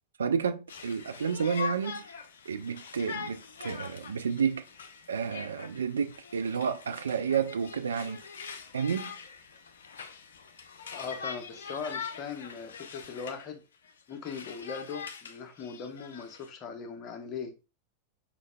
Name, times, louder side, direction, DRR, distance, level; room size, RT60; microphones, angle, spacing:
voice 1, 0.2-2.0 2.5-4.6 5.1-8.2 8.7-9.1, right 6 dB, 70° right, 0.4 m, -30 dB
Conversation, 0.7-13.5 13.8-16.5, left 6 dB, 65° left, 0.5 m, -43 dB
voice 2, 10.9-13.6 14.1-17.5, left 6 dB, 35° left, 0.9 m, -40 dB
5.0 x 4.0 x 2.2 m
figure-of-eight pair, 90°, 0 cm